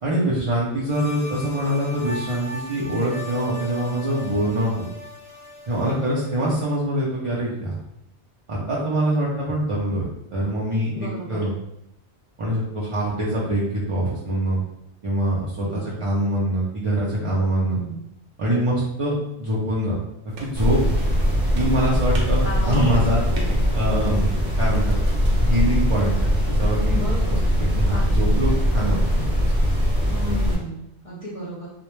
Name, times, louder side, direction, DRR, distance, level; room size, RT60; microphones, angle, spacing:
voice 1, 0.0-4.8 5.7-7.8 8.5-11.5 12.4-14.6 15.0-17.8 18.4-20.0 20.4-20.8 21.5-23.2 23.7-24.3 24.6-25.0 25.4-26.3 26.6-27.0 27.6-29.5, right 1 dB, 60° right, -7 dB, 0.3 m, -24 dB
sound 1, 0.9-6.7, left 2 dB, 5° right, 0.8 m, -38 dB
voice 2, 10.9-11.5 15.6-16.1 17.6-18.1 22.4-23.0 23.3-23.6 26.9-27.4 27.9-28.2 30.1-31.7, right 1 dB, 45° left, -6 dB, 0.5 m, -34 dB
sound 2, 20.3-26.8, right 1 dB, 85° right, 0.9 m, -39 dB
sound 3, 20.6-30.6, equal, 40° right, 0.7 m, -21 dB
2.1 x 2.1 x 3.0 m, 0.80 s
omnidirectional pair, 1.2 m